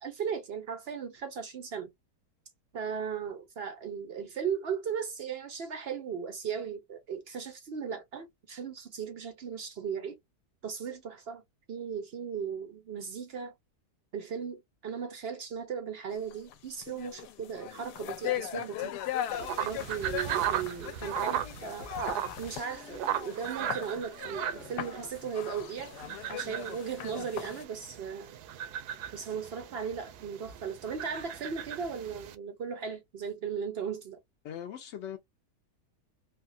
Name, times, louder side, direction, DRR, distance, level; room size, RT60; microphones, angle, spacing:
voice 1, 0.0-1.9 2.7-10.2 10.6-11.4 11.7-13.5 14.1-18.9 19.6-21.9 22.4-28.4 29.1-34.2, right 7 dB, 60° right, 0.6 m, -37 dB
sound 1, 16.3-16.5 16.8-27.6, left 11 dB, 90° left, 1.2 m, -39 dB
sound 2, 19.3-32.4, right 10 dB, 80° right, 1.1 m, -37 dB
voice 2, 34.4-35.2, left 9 dB, 70° left, 0.7 m, -40 dB
3.4 x 2.2 x 2.5 m
omnidirectional pair, 1.7 m